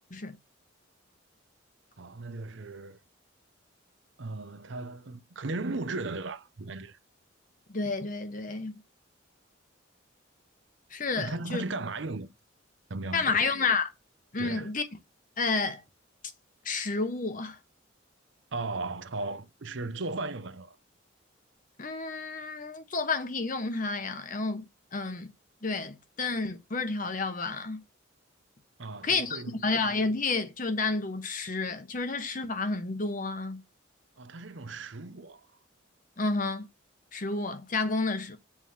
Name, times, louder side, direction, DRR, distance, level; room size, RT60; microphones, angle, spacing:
voice 1, 2.0-3.0 4.2-7.0 11.2-12.3 12.9-13.5 14.4-14.7 18.5-20.8 28.8-29.6 34.2-35.5, right 3 dB, 60° right, 0.7 m, -36 dB
voice 2, 7.7-8.8 10.9-11.6 13.1-13.9 14.3-14.9 15.4-15.8 16.6-17.6 21.8-25.3 25.6-27.8 29.0-33.6 36.2-36.7 37.1-38.4, left 3 dB, 40° left, 1.0 m, -30 dB
7.3 x 3.2 x 5.7 m
head